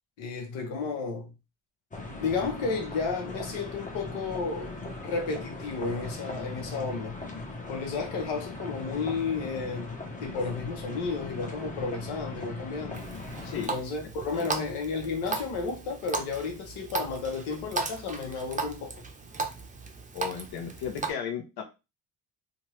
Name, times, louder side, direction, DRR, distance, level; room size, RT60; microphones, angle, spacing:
voice 1, 0.2-1.3 2.1-4.7 5.0-7.2 7.7-13.1 13.7-18.9, left 4 dB, 85° left, 1.0 m, -32 dB
sound 1, 1.9-13.7, left 2 dB, 15° left, 1.0 m, -39 dB
Water tap faucet, 12.9-21.1, right 3 dB, 15° right, 0.6 m, -36 dB
voice 2, 13.4-13.8 14.3-14.6 20.1-21.6, left 8 dB, 55° left, 0.8 m, -35 dB
2.7 x 2.5 x 3.1 m
supercardioid pair, 65°, 46 cm